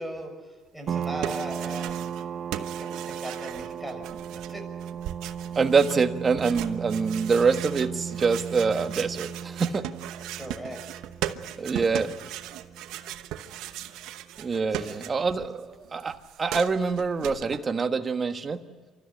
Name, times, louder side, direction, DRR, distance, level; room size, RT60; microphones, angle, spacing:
voice 1, 0.0-2.2 2.5-4.0 4.3-4.6 10.3-10.8 11.6-12.1 14.6-15.0 15.4-15.5, right 1 dB, ahead, 5 dB, 6.0 m, -39 dB
sound 1, 0.9-14.1, right 8 dB, 55° right, 0.7 m, -36 dB
sound 2, 0.9-2.3 2.5-15.5 15.7-17.6, right 12 dB, 85° right, 1.0 m, -38 dB
voice 2, 5.5-9.9 11.6-12.1 14.4-18.6, right 5 dB, 35° right, 8 dB, 1.4 m, -25 dB
28.5 x 13.5 x 9.9 m, 1.5 s
cardioid pair, 95°, 0 cm